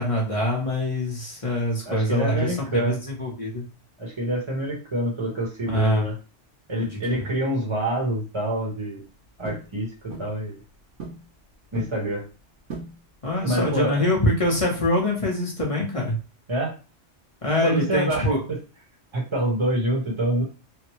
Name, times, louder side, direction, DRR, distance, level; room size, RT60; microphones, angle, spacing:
voice 1, 0.0-3.6 5.7-6.1 7.1-7.3 13.2-16.2 17.4-18.4, left 1 dB, 30° left, -2 dB, 0.9 m, -24 dB
voice 2, 1.8-3.0 4.0-6.1 6.7-9.0 9.4-10.6 11.7-12.2 13.4-14.0 16.5-16.7 17.6-18.6 19.1-20.4, right 1 dB, 25° right, -2 dB, 1.1 m, -26 dB
sound 1, 9.4-9.7 10.1-10.4 11.0-11.3 11.5-12.0 12.7-13.0 13.5-13.8 14.4-14.9, right 3 dB, 80° right, 1.2 m, -38 dB
3.4 x 2.2 x 3.0 m, 0.33 s
omnidirectional pair, 1.2 m